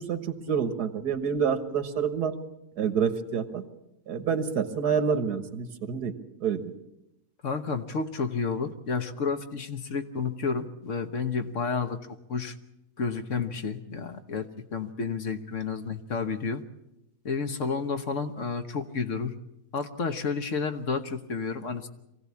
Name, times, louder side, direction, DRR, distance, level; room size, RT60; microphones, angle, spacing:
voice 1, 0.0-2.4 2.8-3.6 4.1-6.1 6.4-6.6, right 7 dB, 85° right, 10 dB, 1.9 m, -28 dB
voice 2, 7.4-12.6 13.0-16.6 17.2-19.3 19.7-21.9, left 5 dB, 55° left, 8 dB, 1.4 m, -31 dB
23.5 x 16.5 x 8.4 m, 0.88 s
omnidirectional pair, 1.7 m